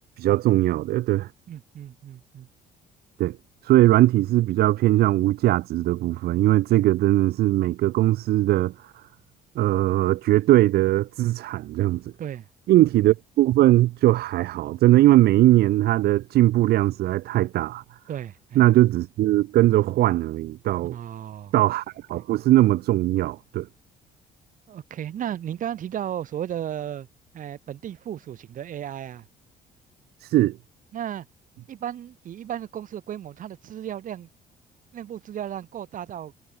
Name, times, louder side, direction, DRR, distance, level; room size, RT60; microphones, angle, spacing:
voice 1, 0.2-1.3 3.2-3.4 3.6-8.9 9.6-12.1 12.7-17.8 18.6-21.0 21.5-23.7 30.2-30.6, right 15 dB, 65° right, 0.7 m, -20 dB
voice 2, 1.5-2.5 12.2-12.5 18.1-18.6 20.8-21.5 22.1-22.2 24.7-27.1 27.3-29.2 30.9-31.3 31.7-34.3 34.9-36.3, right 10 dB, 50° right, 1.4 m, -34 dB
cardioid pair, 110°, 17 cm